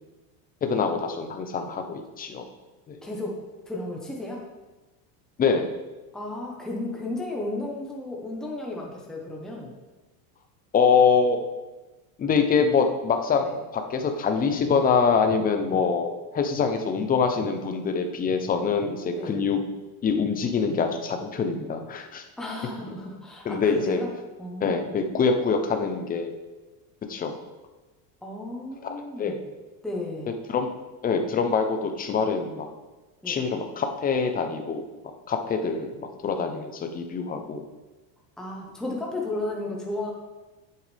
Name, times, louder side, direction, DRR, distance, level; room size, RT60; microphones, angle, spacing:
voice 1, 0.6-2.4 2.9-3.0 5.4-5.8 10.7-11.4 12.2-13.5 13.7-19.6 20.0-22.2 23.5-24.0 24.6-26.3 27.1-27.3 28.8-29.4 30.5-30.7 31.0-32.7 33.3-37.6, left 5 dB, 20° left, 5 dB, 0.6 m, -25 dB
voice 2, 3.0-4.4 6.1-9.7 13.4-13.6 19.1-19.4 22.4-24.1 24.4-24.7 28.2-29.4 29.8-30.3 33.2-33.4 38.4-40.1, left 2 dB, ahead, -2 dB, 1.1 m, -33 dB
8.8 x 8.3 x 3.4 m, 1.2 s
cardioid pair, 155°, 48 cm